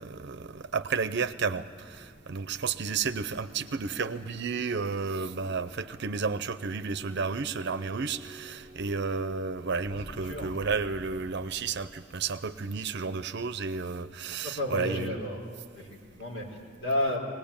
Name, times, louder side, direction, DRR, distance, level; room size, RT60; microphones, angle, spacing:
voice 1, 0.0-15.2, right 5 dB, 60° right, 11 dB, 0.7 m, -32 dB
sound 1, 0.6-14.1, right 1 dB, 5° right, 1.6 m, -52 dB
voice 2, 9.9-10.5 14.4-15.4 15.7-17.2, left 1 dB, 90° left, -1 dB, 4.9 m, -32 dB
22.0 x 19.0 x 8.8 m, 2.2 s
head